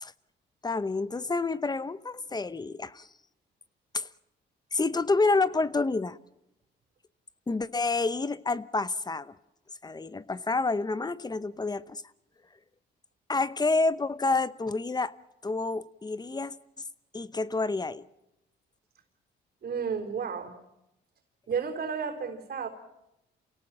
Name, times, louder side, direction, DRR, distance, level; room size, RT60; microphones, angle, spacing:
voice 1, 0.6-3.1 3.9-4.1 4.7-6.2 7.5-9.3 9.8-12.0 13.3-15.1 15.4-16.5 17.1-18.1, left 3 dB, 20° left, 16 dB, 0.8 m, -28 dB
voice 2, 19.6-20.6 21.5-22.7, right 6 dB, 50° right, 1 dB, 4.0 m, -32 dB
28.0 x 17.5 x 7.5 m, 0.88 s
cardioid pair, 90°, 20 cm